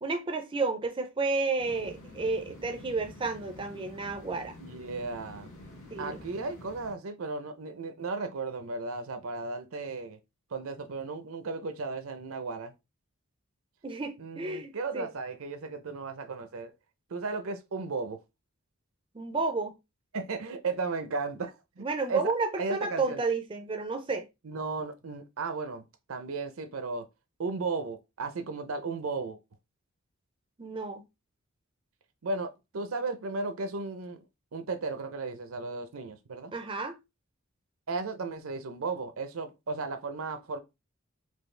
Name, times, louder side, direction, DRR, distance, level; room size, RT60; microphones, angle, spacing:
voice 1, 0.0-4.5 5.9-6.2 13.8-15.1 19.1-19.7 21.8-24.2 30.6-31.0 36.5-37.0, right 3 dB, 25° right, 0.4 m, -31 dB
sound 1, 1.6-6.9, left 1 dB, 80° left, 1.7 m, -48 dB
voice 2, 4.6-5.5 6.0-10.2 10.5-12.7 14.2-16.7 17.1-18.2 20.1-23.2 24.4-25.8 26.1-27.1 27.4-29.4 32.2-34.2 34.5-36.5 37.9-40.6, right 3 dB, 70° right, 0.6 m, -35 dB
4.5 x 2.4 x 3.2 m
head